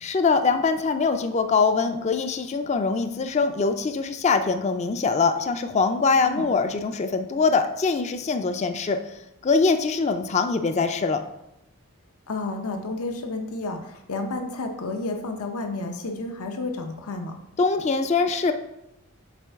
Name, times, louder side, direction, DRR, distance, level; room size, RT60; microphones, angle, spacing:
voice 1, 0.0-11.2 17.6-18.5, left 4 dB, 30° left, 8 dB, 0.3 m, -23 dB
voice 2, 12.3-17.3, left 2 dB, 80° left, 4 dB, 0.7 m, -31 dB
7.4 x 4.5 x 3.5 m, 0.89 s
head